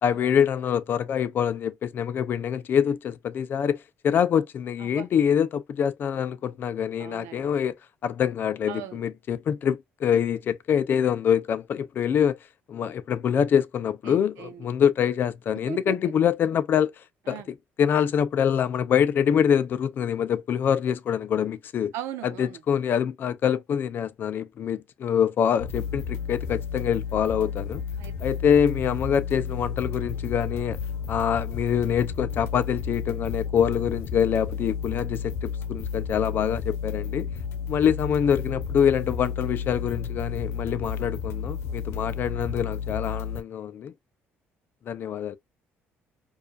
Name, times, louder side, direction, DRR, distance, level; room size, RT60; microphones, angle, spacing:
voice 1, 0.0-7.7 8.0-12.4 12.7-16.9 17.3-17.4 17.8-21.9 22.4-27.8 28.2-30.8 31.1-37.3 37.7-43.9 44.9-45.4, left 8 dB, 50° left, 0.5 m, -25 dB
voice 2, 7.0-7.5 8.7-9.1 14.0-14.7 15.5-16.1 17.2-17.5 21.9-22.6 28.0-28.1 37.5-37.6, right 11 dB, 85° right, 0.9 m, -39 dB
sound 1, 25.6-43.4, left 6 dB, 70° left, 1.0 m, -32 dB
4.7 x 2.5 x 2.4 m
cardioid pair, 125°, 5 cm